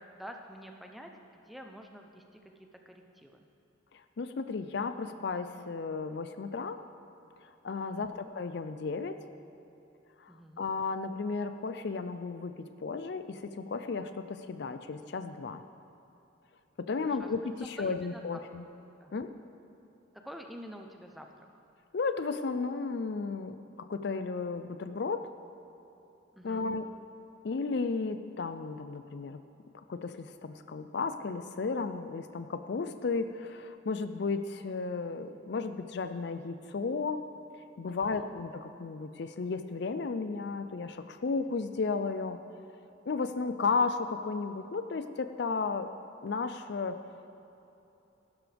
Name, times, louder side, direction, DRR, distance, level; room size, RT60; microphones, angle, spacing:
voice 1, 0.0-2.4 2.9-3.4 7.8-8.2 10.3-10.7 17.0-17.3 17.8-18.4 19.0-19.1 20.2-21.5 26.3-26.7 37.9-38.3, equal, ahead, 3 dB, 0.7 m, -48 dB
voice 2, 3.9-6.8 7.4-9.2 10.2-15.6 16.8-18.6 19.1-19.3 21.9-25.3 26.4-26.9 27.4-29.4 29.7-37.2 37.8-42.4 43.1-45.9 46.2-47.0, left 4 dB, 55° left, 10 dB, 0.4 m, -34 dB
15.5 x 12.0 x 3.4 m, 2.9 s
head